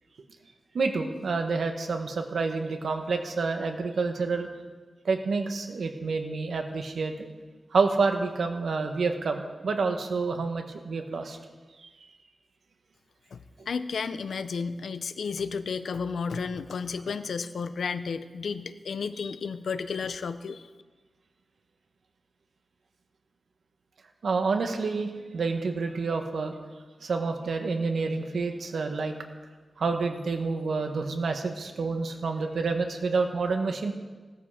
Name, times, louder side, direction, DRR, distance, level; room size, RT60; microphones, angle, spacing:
voice 1, 0.7-4.5 5.0-7.3 7.7-11.4 11.8-11.9 24.2-26.5 27.0-29.1 29.8-33.9, right 4 dB, 70° right, 4 dB, 1.6 m, -28 dB
voice 2, 13.7-20.6, left 5 dB, 85° left, 11 dB, 0.7 m, -32 dB
16.5 x 13.5 x 5.1 m, 1.4 s
wide cardioid pair, 180°, 0 cm